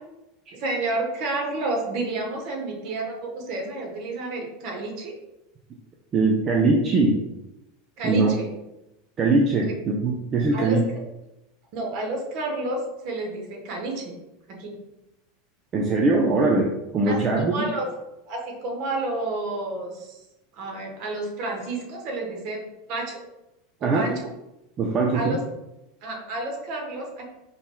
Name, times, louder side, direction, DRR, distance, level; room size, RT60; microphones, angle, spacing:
voice 1, 0.5-5.1 8.0-8.5 9.6-9.7 10.5-10.8 11.7-14.2 14.6-14.7 17.1-17.9 18.3-20.2 20.6-22.6 22.9-23.2 23.8-24.3 25.1-25.4 26.0-27.3, right 2 dB, 50° right, 1 dB, 1.1 m, -30 dB
voice 2, 6.1-7.2 8.0-8.3 9.2-10.8 15.7-17.7 23.8-24.1 24.8-25.4, right 3 dB, 30° right, -1 dB, 0.6 m, -21 dB
5.4 x 3.0 x 2.2 m, 0.93 s
figure-of-eight pair, 80°, 0 cm